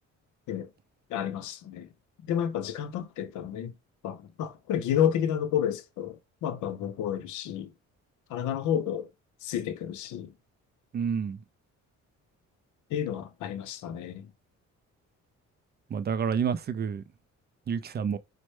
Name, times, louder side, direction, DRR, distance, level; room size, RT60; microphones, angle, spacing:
voice 1, 1.1-1.9 2.2-3.7 4.0-7.7 8.3-9.1 9.4-10.3 12.9-14.3, left 9 dB, 80° left, 0.6 m, -30 dB
voice 2, 10.9-11.4 15.9-17.0 17.7-18.2, right 7 dB, 35° right, 0.4 m, -29 dB
4.1 x 2.1 x 3.1 m
cardioid pair, 90°, 30 cm